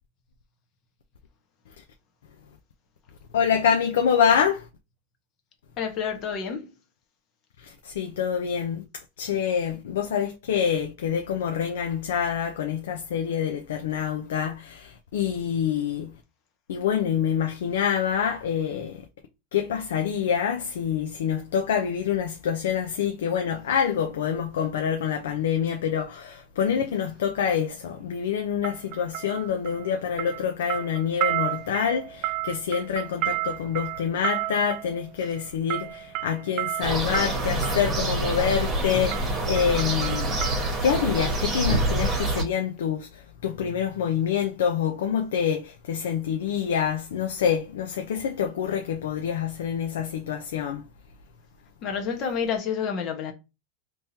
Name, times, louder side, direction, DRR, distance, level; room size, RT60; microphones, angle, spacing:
voice 1, 3.3-4.6 7.6-8.8 9.2-16.1 16.7-19.0 19.5-40.4 40.8-43.1 43.4-50.8, left 8 dB, 85° left, 0.6 m, -26 dB
voice 2, 5.8-6.7 35.2-35.3 51.8-53.3, left 7 dB, 40° left, 1.1 m, -29 dB
sound 1, 26.7-26.9 28.6-29.9 30.2-37.9 38.6-38.8 39.1-41.0 41.3-41.4, right 16 dB, 45° right, 0.4 m, -32 dB
sound 2, 36.8-42.4, right 1 dB, 25° right, 1.3 m, -26 dB
3.5 x 3.0 x 2.7 m
supercardioid pair, 140°, 0 cm